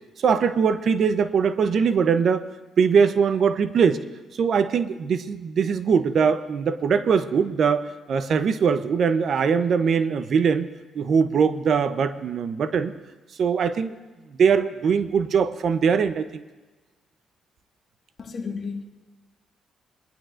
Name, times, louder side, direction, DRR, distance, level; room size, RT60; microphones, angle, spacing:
voice 1, 0.2-2.5 2.8-4.0 4.3-10.7 11.0-12.9 13.4-13.9 14.4-16.4, right 6 dB, 60° right, 12 dB, 0.7 m, -21 dB
voice 2, 18.2-18.8, left 5 dB, 50° left, 2 dB, 1.6 m, -32 dB
22.5 x 11.0 x 2.5 m, 1.3 s
cardioid pair, 90°, 0 cm